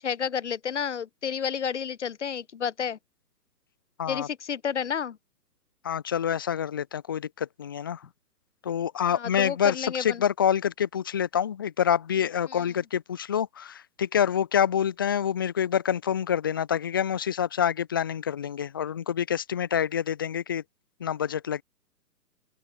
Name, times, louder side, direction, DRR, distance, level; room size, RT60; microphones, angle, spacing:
voice 1, 0.0-3.0 4.1-5.2 9.1-10.2 12.5-12.7, left 7 dB, 45° left, 7.8 m, -31 dB
voice 2, 5.8-8.0 8.6-20.6 21.0-21.6, left 9 dB, 15° left, 1.0 m, -27 dB
open air
hypercardioid pair, 175°, 48 cm